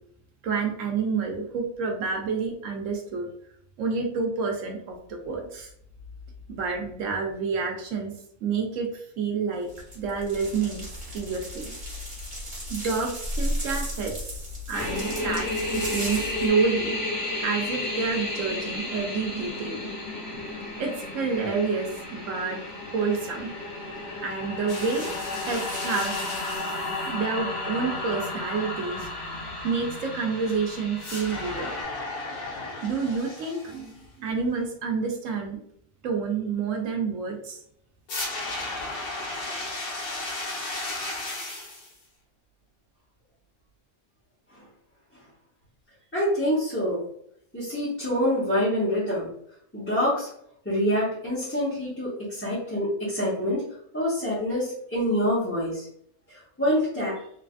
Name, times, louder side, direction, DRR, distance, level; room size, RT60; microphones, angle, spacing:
voice 1, 0.4-3.3 3.8-5.7 6.5-9.7 9.9-10.9 11.1-11.7 12.7-14.4 14.7-15.5 15.7-16.9 17.4-19.9 20.3-20.4 20.8-22.6 22.9-23.5 24.2-25.1 25.5-26.1 27.1-29.1 29.6-31.7 32.8-35.6 36.0-37.6, right 5 dB, 75° right, 2 dB, 1.0 m, -29 dB
sound 1, 9.7-16.5, equal, 40° right, 1.4 m, -34 dB
sound 2, 14.7-31.8, left 2 dB, 60° left, 1.6 m, -33 dB
sound 3, 24.7-27.1 31.0-33.9 38.1-41.9, left 2 dB, 85° left, 1.3 m, -35 dB
voice 2, 46.1-47.0 47.5-49.3 49.7-50.3 50.6-53.6 53.9-55.9 56.6-57.2, equal, 10° left, -10 dB, 0.8 m, -26 dB
3.2 x 2.4 x 2.4 m, 0.68 s
omnidirectional pair, 1.4 m